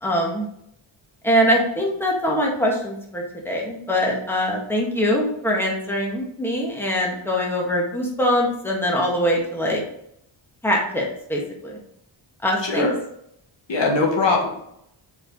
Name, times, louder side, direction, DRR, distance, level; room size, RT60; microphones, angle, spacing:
voice 1, 0.0-0.4 1.2-9.8 10.6-11.8 12.4-12.9, equal, 5° left, -2 dB, 1.7 m, -23 dB
voice 2, 12.6-12.9 13.7-14.5, left 3 dB, 65° left, 0 dB, 1.7 m, -20 dB
6.5 x 4.9 x 4.8 m, 0.74 s
wide cardioid pair, 120°, 48 cm